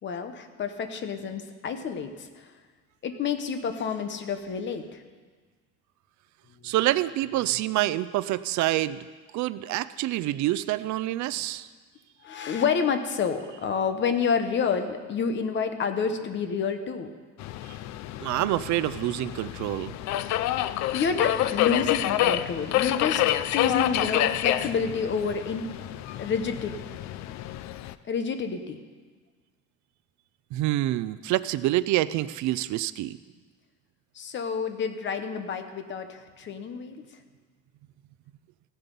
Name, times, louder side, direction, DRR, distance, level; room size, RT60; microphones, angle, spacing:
voice 1, 0.0-2.5 3.0-5.0 6.6-6.7 12.2-17.1 20.9-23.2 23.5-25.7 26.2-26.8 28.1-28.8 34.1-37.0, left 6 dB, 35° left, 8 dB, 0.9 m, -29 dB
voice 2, 6.6-9.1 9.3-11.7 18.2-19.9 30.5-33.2, right 15 dB, 65° right, 16 dB, 0.4 m, -27 dB
Subway metro underground, 17.4-27.9, left 13 dB, 60° left, 0.5 m, -28 dB
16.0 x 9.9 x 5.3 m, 1.5 s
cardioid pair, 180°, 31 cm